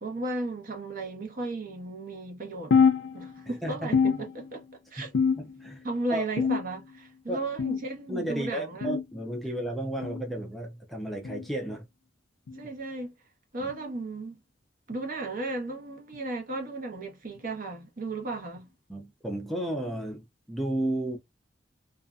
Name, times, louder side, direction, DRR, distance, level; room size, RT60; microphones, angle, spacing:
voice 1, 0.0-2.7 3.1-4.6 4.9-5.1 5.8-8.9 12.5-13.1 13.5-14.4 14.9-18.7, right 2 dB, 50° right, 0.9 m, -35 dB
sound 1, 2.7-3.6 3.9-4.7 5.1-5.8 6.4-7.0 7.6-8.0 8.8-9.0 10.0-10.2 11.2-11.5 12.5-12.7 13.7-13.9 14.9-15.1 16.1-16.2 17.4-17.5, left 5 dB, 85° left, 0.5 m, -26 dB
voice 2, 5.4-5.8 6.1-6.3 7.3-7.5 8.1-11.9 13.6-13.7 18.9-21.2, right 1 dB, ahead, 0.5 m, -33 dB
2.6 x 2.4 x 2.2 m
head